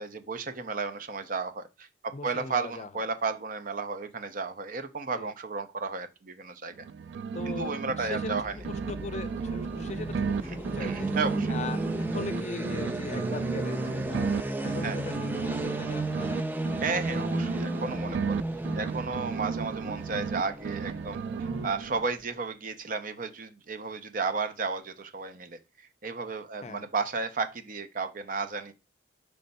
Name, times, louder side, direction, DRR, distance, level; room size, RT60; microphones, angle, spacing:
voice 1, 0.0-6.9 7.5-8.6 10.8-11.5 14.8-15.0 16.8-18.4 18.8-25.6 26.0-28.7, right 4 dB, 50° right, 0.7 m, -33 dB
voice 2, 2.1-3.0 5.2-5.3 7.3-11.1 11.5-16.4 21.5-21.8 26.6-26.9, left 3 dB, 40° left, 0.5 m, -40 dB
sound 1, 6.7-8.4 8.6-12.4 12.6-16.4 16.6-20.4 20.6-22.1, right 6 dB, 80° right, 0.3 m, -34 dB
sound 2, 8.3-22.2, right 1 dB, 10° right, 0.4 m, -34 dB
5.3 x 3.4 x 5.4 m
head